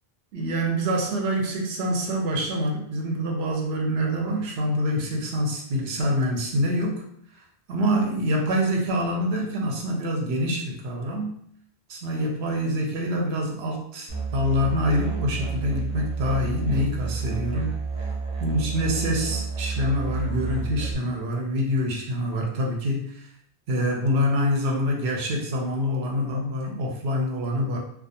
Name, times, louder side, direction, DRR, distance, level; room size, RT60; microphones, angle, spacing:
voice 1, 0.3-7.0 7.7-11.3 11.9-17.8 18.4-23.2 23.7-27.8, equal, 80° right, 1 dB, 0.9 m, -26 dB
Musical instrument, 14.1-20.9, right 4 dB, 45° right, 0.4 m, -30 dB
2.3 x 2.2 x 2.7 m, 0.67 s
omnidirectional pair, 1.1 m